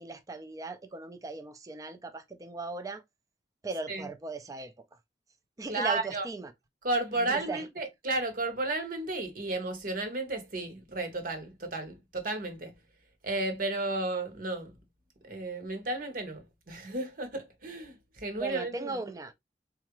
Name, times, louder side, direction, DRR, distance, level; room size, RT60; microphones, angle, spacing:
voice 1, 0.0-3.0 3.6-4.7 5.6-6.5 7.2-7.7 18.4-19.3, right 3 dB, 20° right, 0.4 m, -38 dB
voice 2, 5.7-6.3 6.8-12.8 13.2-14.7 15.2-18.9, right 2 dB, 50° right, 0.9 m, -33 dB
4.1 x 2.4 x 2.9 m
head